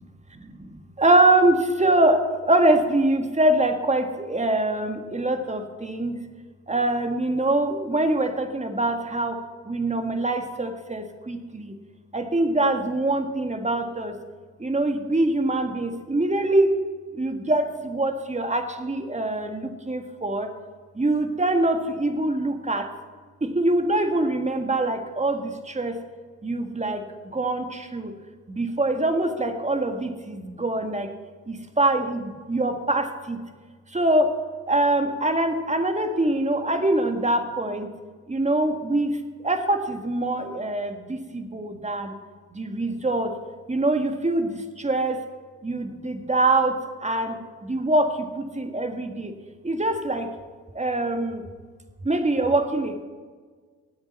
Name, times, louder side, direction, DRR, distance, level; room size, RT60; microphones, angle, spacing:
voice 1, 0.4-6.2 6.7-9.4 9.7-11.7 12.1-14.1 14.6-16.7 17.1-20.5 21.0-22.9 23.4-26.0 26.4-28.1 28.5-31.1 31.5-33.4 33.9-34.3 34.7-37.9 38.3-42.2 42.5-43.3 43.7-45.2 45.6-49.3 49.6-50.3 50.8-51.4 52.0-53.0, right 2 dB, 20° right, 6 dB, 1.8 m, -24 dB
19.5 x 8.0 x 4.3 m, 1.5 s
hypercardioid pair, 50°, 37 cm